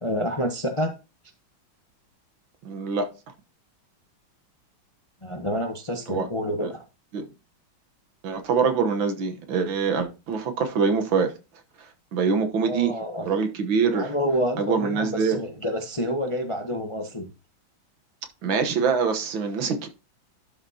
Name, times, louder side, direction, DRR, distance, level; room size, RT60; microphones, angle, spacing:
voice 1, 0.0-0.9 5.2-6.8 12.6-13.3 13.9-17.3, equal, 25° left, 0.7 m, -28 dB
voice 2, 2.7-3.1 6.1-6.3 6.6-6.7 7.1-7.3 8.2-11.4 12.1-12.9 13.2-14.1 14.6-15.4 18.4-19.9, right 5 dB, 70° right, 1.9 m, -24 dB
11.5 x 5.9 x 2.8 m
omnidirectional pair, 2.2 m